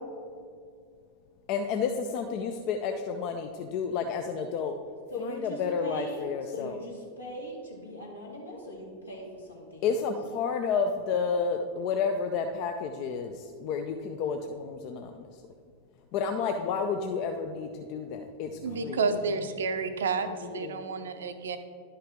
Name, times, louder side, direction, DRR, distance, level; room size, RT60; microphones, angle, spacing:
voice 1, 1.5-4.8 5.2-6.8 9.8-15.4 16.1-19.0, left 5 dB, 40° left, 6 dB, 0.5 m, -31 dB
voice 2, 5.1-9.9 18.7-19.5 20.2-20.8, left 1 dB, 80° left, -3 dB, 2.0 m, -40 dB
voice 3, 18.6-20.3 20.5-21.6, right 4 dB, 65° right, 9 dB, 0.6 m, -30 dB
11.0 x 5.6 x 3.6 m, 2.2 s
figure-of-eight pair, 90°, 0 cm